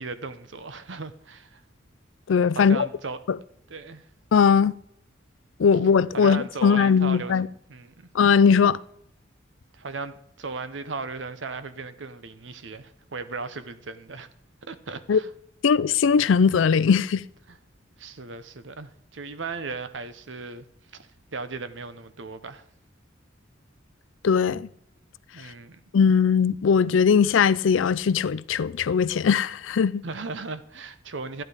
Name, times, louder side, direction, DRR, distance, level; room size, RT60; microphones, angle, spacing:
voice 1, 0.0-1.6 2.5-3.2 3.7-4.0 6.1-7.4 7.7-8.1 9.7-14.3 14.6-15.3 17.5-17.6 18.0-20.7 20.9-22.6 25.3-25.8 30.0-31.4, right 4 dB, 70° right, 0.9 m, -36 dB
voice 2, 2.3-2.9 3.3-3.4 4.3-4.7 5.6-7.5 8.1-8.8 15.1-15.2 15.6-17.2 24.2-24.7 25.9-30.0, left 6 dB, 80° left, 0.4 m, -20 dB
12.5 x 9.3 x 4.9 m
head